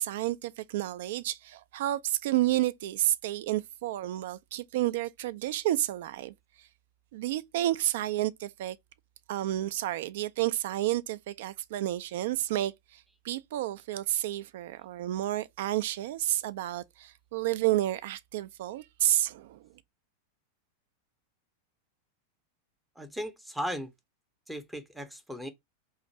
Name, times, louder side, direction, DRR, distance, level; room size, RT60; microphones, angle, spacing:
voice 1, 0.0-6.3 7.1-8.8 9.3-19.6, right 14 dB, 55° right, 0.3 m, -30 dB
voice 2, 23.0-23.9 24.5-25.5, equal, 5° right, 0.6 m, -36 dB
2.5 x 2.4 x 4.1 m
figure-of-eight pair, 90°, 0 cm